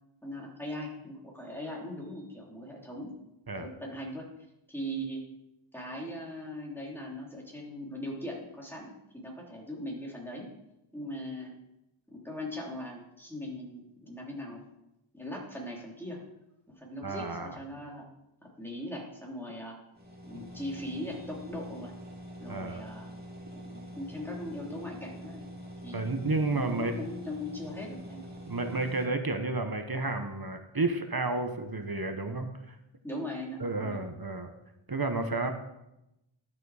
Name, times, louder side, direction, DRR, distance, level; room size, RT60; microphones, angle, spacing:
voice 1, 0.2-3.2 3.6-4.3 4.7-5.2 5.7-10.5 10.9-11.6 12.1-14.6 15.1-16.2 16.7-18.1 18.4-19.8 20.2-21.9 22.4-23.1 23.5-25.5 25.8-26.0 26.5-28.3 33.0-34.1, left 1 dB, 5° left, -2 dB, 3.1 m, -40 dB
voice 2, 17.0-17.6 20.3-20.4 22.5-22.8 25.9-26.9 28.5-32.8 33.6-34.5 34.9-35.5, right 2 dB, 45° right, 6 dB, 1.1 m, -31 dB
sound 1, 19.9-29.1, equal, 20° right, 2.8 m, -45 dB
12.0 x 7.6 x 4.9 m, 0.89 s
wide cardioid pair, 40°, 50 cm